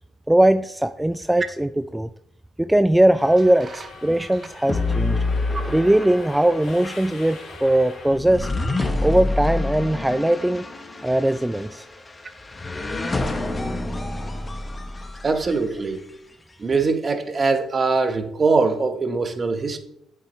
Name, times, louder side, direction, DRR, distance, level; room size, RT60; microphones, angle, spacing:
voice 1, 0.3-2.1 2.6-5.2 5.7-8.5 9.0-10.6 11.0-11.9, right 1 dB, 10° right, 0.3 m, -20 dB
Subway metro underground, 3.2-8.2, left 3 dB, 65° left, 2.8 m, -43 dB
sound 1, 4.7-16.0, left 2 dB, 25° left, 1.0 m, -28 dB
voice 2, 15.2-16.0 16.6-19.8, right 4 dB, 35° right, 1.1 m, -22 dB
8.7 x 7.3 x 3.1 m
supercardioid pair, 70°, 0 cm